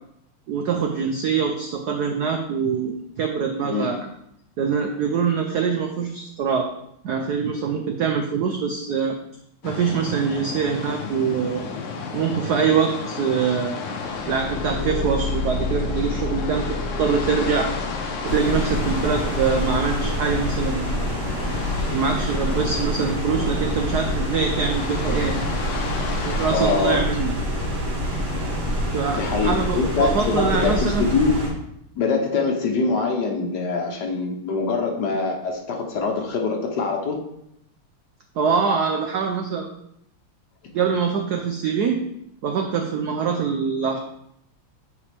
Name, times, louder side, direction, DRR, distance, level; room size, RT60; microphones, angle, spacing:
voice 1, 0.5-4.1 4.6-6.7 7.0-9.2 9.6-11.6 12.1-13.7 14.3-16.7 17.0-17.7 18.2-20.9 21.9-25.3 26.2-27.3 28.9-31.0 38.4-39.7 40.7-42.0 42.4-44.0, right 6 dB, 80° right, 4 dB, 0.9 m, -24 dB
sound 1, 9.6-27.0, left 5 dB, 85° left, 1.7 m, -33 dB
Car / Engine, 14.0-18.5, left 3 dB, 30° left, 1.1 m, -30 dB
sound 2, 18.2-31.5, equal, 50° right, 2.0 m, -26 dB
voice 2, 26.5-27.1 29.2-31.4 32.0-37.2, left 4 dB, 60° left, 2 dB, 1.3 m, -23 dB
8.3 x 4.8 x 3.4 m, 0.77 s
omnidirectional pair, 2.4 m